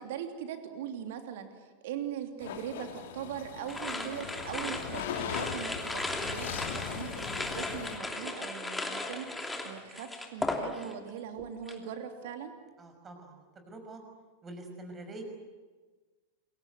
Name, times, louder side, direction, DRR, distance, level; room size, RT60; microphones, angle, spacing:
voice 1, 0.0-1.5 1.8-6.5 6.7-12.5, right 9 dB, 55° right, 6 dB, 3.1 m, -40 dB
sound 1, 2.4-8.0, left 8 dB, 55° left, 2.8 m, -40 dB
sound 2, 3.7-11.1 11.4-11.8, left 2 dB, 5° left, 2.9 m, -36 dB
voice 2, 12.8-14.0 14.4-15.2, right 2 dB, 20° right, 5 dB, 5.9 m, -46 dB
29.0 x 22.5 x 8.1 m, 1.3 s
figure-of-eight pair, 90°, 0 cm